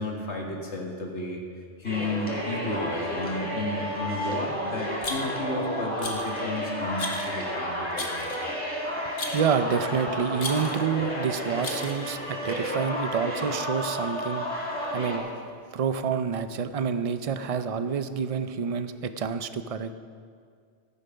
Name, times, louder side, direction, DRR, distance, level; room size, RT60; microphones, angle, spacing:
voice 1, 0.0-1.4 1.8-8.3, left 2 dB, 70° left, 0 dB, 2.1 m, -32 dB
sound 1, 1.8-15.2, equal, 5° left, 3.8 m, -32 dB
Rattle, 5.0-5.5 6.0-6.4 7.0-7.4 8.0-8.5 9.2-9.6 10.4-10.9 11.6-12.2, left 3 dB, 50° left, 1.3 m, -36 dB
voice 2, 9.3-14.4 14.9-15.2 15.7-19.9, right 6 dB, 45° right, 10 dB, 0.5 m, -28 dB
15.0 x 9.0 x 5.7 m, 2.1 s
omnidirectional pair, 1.2 m